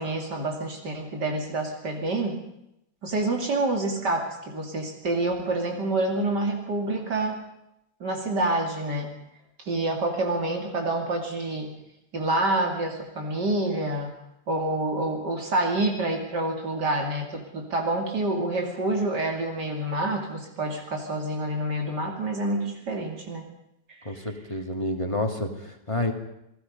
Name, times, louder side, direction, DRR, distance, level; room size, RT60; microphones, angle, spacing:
voice 1, 0.0-2.4 3.0-7.4 8.0-9.2 9.6-11.8 12.1-14.1 14.5-23.4 23.9-24.2, right 2 dB, 70° right, 1 dB, 3.3 m, -27 dB
voice 2, 24.0-26.1, left 1 dB, 15° left, 3 dB, 2.6 m, -29 dB
29.0 x 19.0 x 5.4 m, 0.81 s
omnidirectional pair, 1.9 m